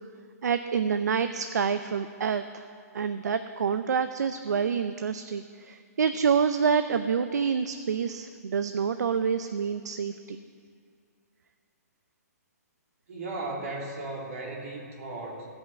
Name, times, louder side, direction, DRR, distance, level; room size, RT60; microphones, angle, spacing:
voice 1, 0.4-2.6 2.9-10.4, right 6 dB, 90° right, 10 dB, 0.5 m, -27 dB
voice 2, 13.1-15.5, right 2 dB, 55° right, -2 dB, 2.8 m, -36 dB
16.0 x 5.7 x 7.7 m, 2.2 s
hypercardioid pair, 170°, 9 cm